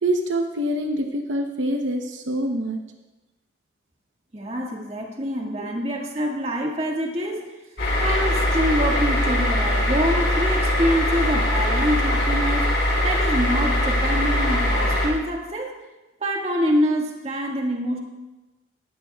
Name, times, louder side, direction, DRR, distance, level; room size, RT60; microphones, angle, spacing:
voice 1, 0.0-2.8 5.6-5.7, right 1 dB, 80° right, 3 dB, 0.9 m, -25 dB
voice 2, 4.3-7.4 8.0-12.7 13.0-15.7 16.2-18.0, equal, 35° right, -1 dB, 1.8 m, -25 dB
sound 1, 7.8-15.1, left 1 dB, 60° left, 4.2 m, -21 dB
17.5 x 12.5 x 2.3 m, 1.1 s
head